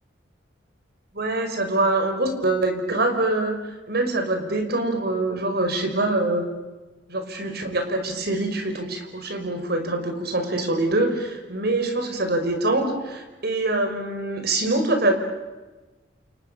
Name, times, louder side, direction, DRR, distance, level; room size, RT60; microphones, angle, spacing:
voice 1, 1.1-3.6 3.9-6.5 7.1-15.1, right 2 dB, 60° right, 6 dB, 5.5 m, -24 dB
29.5 x 29.0 x 7.0 m, 1.2 s
head